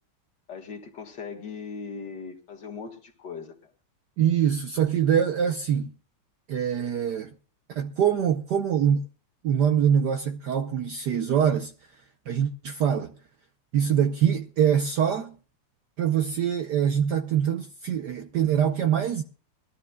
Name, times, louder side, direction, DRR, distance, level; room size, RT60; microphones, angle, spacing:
voice 1, 0.5-3.5, left 5 dB, 55° left, 2.3 m, -39 dB
voice 2, 4.2-5.9 6.5-7.3 7.7-9.1 9.4-11.7 12.3-13.1 13.7-15.4 16.0-19.2, right 8 dB, 65° right, 1.0 m, -24 dB
22.0 x 13.0 x 2.3 m
omnidirectional pair, 2.4 m